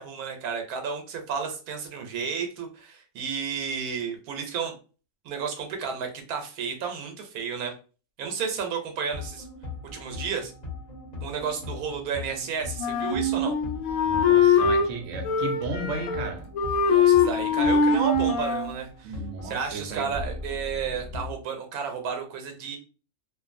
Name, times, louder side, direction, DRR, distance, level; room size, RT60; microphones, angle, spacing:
voice 1, 0.0-4.7 5.2-7.7 8.2-9.4 9.9-10.5 11.2-13.6 16.9-22.8, right 6 dB, 90° right, 1.1 m, -32 dB
sound 1, 9.0-21.3, left 3 dB, 30° left, 1.2 m, -39 dB
Wind instrument woodwind instrument, 12.8-14.9 15.2-16.3 16.5-18.7, left 5 dB, 75° left, 1.0 m, -22 dB
voice 2, 14.0-16.6 19.0-20.1, right 3 dB, 65° right, 0.9 m, -35 dB
2.6 x 2.4 x 2.5 m
omnidirectional pair, 1.5 m